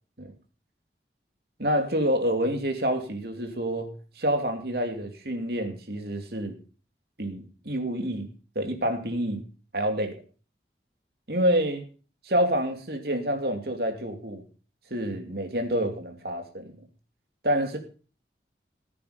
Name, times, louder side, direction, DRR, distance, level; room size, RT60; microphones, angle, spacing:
voice 1, 1.6-3.9 4.2-6.6 7.2-8.3 8.5-9.5 9.7-10.2 11.3-11.9 12.2-14.4 14.9-16.7 17.4-17.8, equal, 60° right, 5 dB, 2.8 m, -27 dB
15.0 x 9.3 x 5.2 m, 0.38 s
head